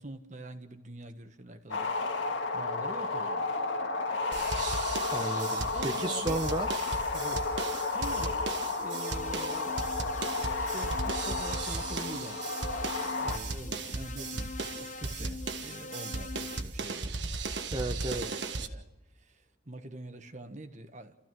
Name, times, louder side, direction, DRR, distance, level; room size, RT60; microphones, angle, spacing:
voice 1, 0.0-1.9 2.5-3.6 5.7-6.5 7.1-7.5 7.9-8.5 8.8-9.8 10.6-12.4 13.2-17.1 18.1-18.8 19.2-21.2, right 1 dB, 40° right, 7 dB, 1.5 m, -45 dB
sound 1, 1.7-13.4, left 3 dB, 85° left, 1.8 m, -32 dB
sound 2, 4.3-18.7, right 3 dB, 70° right, 1.4 m, -37 dB
voice 2, 5.1-6.7 17.7-18.3, right 1 dB, 25° right, 2 dB, 0.9 m, -33 dB
sound 3, 8.9-16.6, left 4 dB, 40° left, 0.7 m, -44 dB
30.0 x 14.5 x 6.2 m, 1.0 s
head